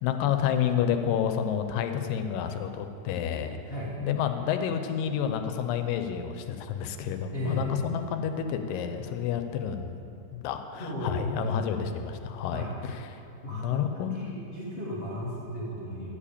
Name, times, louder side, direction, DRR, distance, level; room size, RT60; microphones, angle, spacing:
voice 1, 0.0-3.6 4.0-10.0 10.3-13.2 13.5-14.2, left 8 dB, 85° left, 7 dB, 2.4 m, -29 dB
voice 2, 7.3-7.7 10.8-11.9 12.5-12.7 13.4-13.8 14.1-16.1, equal, 55° left, -7 dB, 0.6 m, -35 dB
11.5 x 4.9 x 8.5 m, 2.8 s
omnidirectional pair, 3.9 m